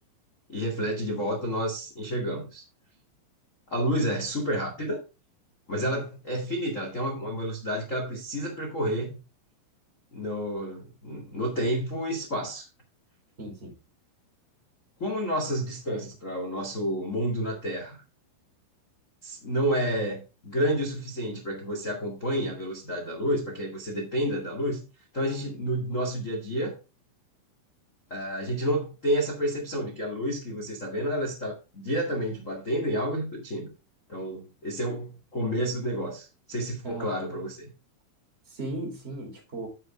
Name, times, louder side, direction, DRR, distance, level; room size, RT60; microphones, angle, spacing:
voice 1, 0.5-2.6 3.7-5.0 5.7-9.2 10.1-12.7 15.0-18.0 19.2-24.8 25.1-26.7 28.1-33.7 34.1-37.6, equal, 50° left, 0.9 m, -30 dB
voice 2, 13.4-13.7 36.8-37.1 38.4-39.7, right 2 dB, 15° right, 3.2 m, -37 dB
12.0 x 5.6 x 3.6 m
omnidirectional pair, 5.5 m